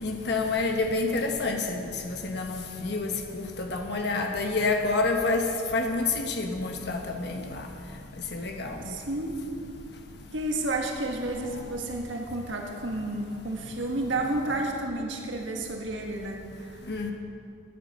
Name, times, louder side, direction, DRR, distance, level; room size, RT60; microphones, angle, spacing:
voice 1, 0.0-3.1 3.3-5.5 5.7-7.6 8.3-8.8 16.9-17.1, left 3 dB, 55° left, 3 dB, 1.2 m, -28 dB
voice 2, 8.8-9.5 10.3-16.8, right 2 dB, 75° right, 1 dB, 1.6 m, -31 dB
13.5 x 9.8 x 6.6 m, 2.5 s
head